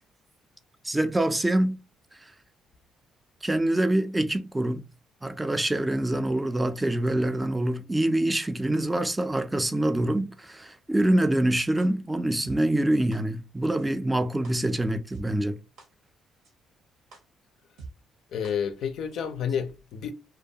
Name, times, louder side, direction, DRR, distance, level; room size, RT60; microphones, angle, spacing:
voice 1, 0.8-1.8 3.4-4.8 5.2-15.6, right 1 dB, 15° right, 0.3 m, -25 dB
sound 1, 11.8-11.9 12.4-12.6 13.1-13.2 13.8-13.9 14.4-14.5 15.1-15.2 15.8-15.9 16.4-16.5 17.1-17.2 17.8-17.9 18.4-18.5 19.1-19.2, right 4 dB, 75° right, 0.8 m, -43 dB
voice 2, 18.3-20.1, left 7 dB, 70° left, 0.4 m, -30 dB
2.3 x 2.2 x 2.7 m
supercardioid pair, 60°, 0 cm